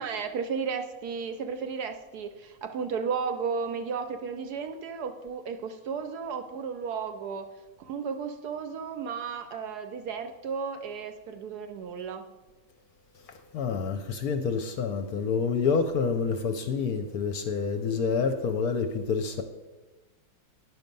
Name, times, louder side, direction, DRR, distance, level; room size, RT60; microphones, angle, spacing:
voice 1, 0.0-7.5 7.8-12.3, right 6 dB, 70° right, 1.0 m, -34 dB
voice 2, 13.3-19.4, left 5 dB, 65° left, 1.0 m, -28 dB
9.8 x 6.2 x 5.3 m
omnidirectional pair, 2.0 m